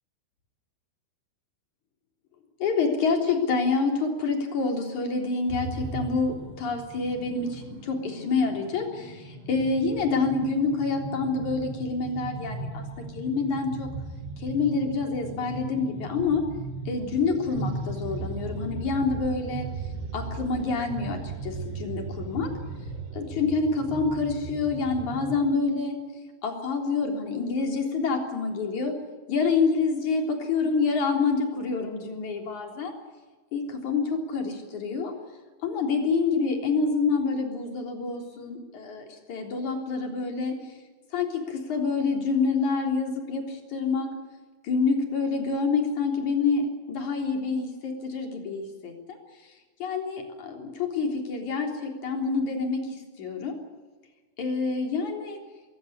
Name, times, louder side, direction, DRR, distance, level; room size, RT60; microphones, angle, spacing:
voice 1, 2.6-12.8 13.1-13.9 14.4-16.4 16.9-19.7 20.1-22.5 23.1-26.0 26.4-28.9 29.3-32.9 33.5-35.1 35.6-40.5 41.1-44.1 44.6-49.2 49.8-53.6 54.4-55.4, left 4 dB, 45° left, 3 dB, 4.6 m, -27 dB
sound 1, 5.5-25.4, right 3 dB, 90° right, 5.6 m, -37 dB
22.5 x 17.5 x 9.9 m, 1.3 s
omnidirectional pair, 5.2 m